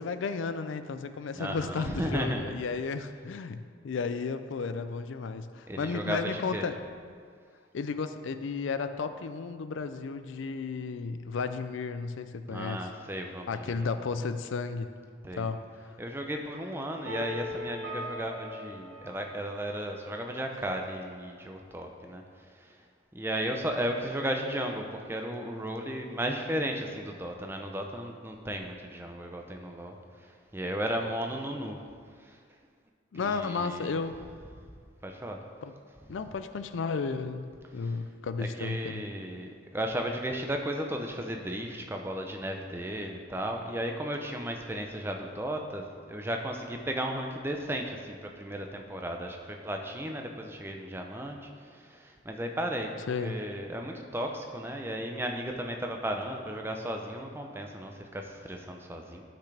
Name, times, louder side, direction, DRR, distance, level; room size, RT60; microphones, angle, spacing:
voice 1, 0.0-6.8 7.7-12.8 13.5-14.9 15.4-15.6 33.1-34.1 35.6-35.7 36.1-39.0 53.1-53.4, left 4 dB, 75° left, 10 dB, 0.4 m, -33 dB
voice 2, 1.3-2.4 5.7-6.7 12.5-14.0 15.2-15.5 16.0-22.2 22.5-22.8 23.1-30.0 30.2-31.8 32.2-32.4 33.1-34.0 35.0-35.4 38.4-59.2, right 1 dB, 10° right, 3 dB, 0.5 m, -35 dB
sound 1, 17.0-20.0, left 1 dB, 80° right, 2.1 m, -40 dB
11.5 x 5.9 x 3.4 m, 2.1 s
head